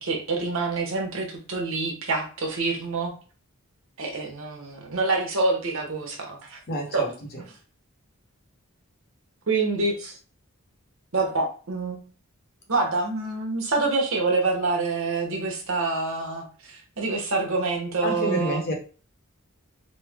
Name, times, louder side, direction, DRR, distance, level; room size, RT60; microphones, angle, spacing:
voice 1, 0.0-3.1 4.0-7.1 7.4-7.5 9.5-10.2 11.1-12.0 12.7-18.6, right 3 dB, 70° right, 1 dB, 0.9 m, -26 dB
voice 2, 6.7-7.1 18.0-18.7, left 1 dB, 50° left, 1 dB, 0.9 m, -28 dB
3.1 x 2.0 x 3.4 m, 0.37 s
head